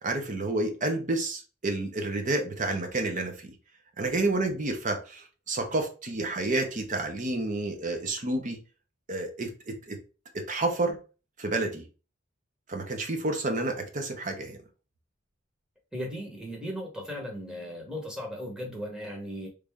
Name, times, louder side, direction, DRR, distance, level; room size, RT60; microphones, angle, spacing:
voice 1, 0.0-3.5 4.0-8.6 9.1-10.0 10.3-11.0 11.4-11.8 12.7-14.6, right 2 dB, 40° right, 5 dB, 0.7 m, -30 dB
voice 2, 15.9-19.5, equal, 5° right, 0 dB, 1.0 m, -37 dB
3.3 x 2.6 x 3.4 m, 0.34 s
head